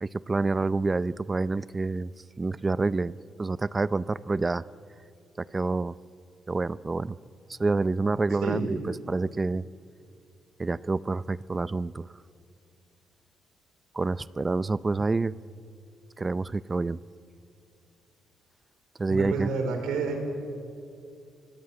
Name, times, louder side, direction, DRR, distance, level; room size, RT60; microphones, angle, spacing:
voice 1, 0.0-2.1 2.4-4.6 5.4-6.0 6.5-7.2 7.5-8.8 9.1-9.6 10.6-12.1 13.9-15.3 16.2-17.0 19.0-19.5, right 3 dB, 25° right, 18 dB, 0.5 m, -27 dB
voice 2, 19.1-20.2, right 4 dB, 85° right, 5 dB, 4.5 m, -29 dB
24.0 x 18.0 x 8.9 m, 2.5 s
cardioid pair, 90°, 0 cm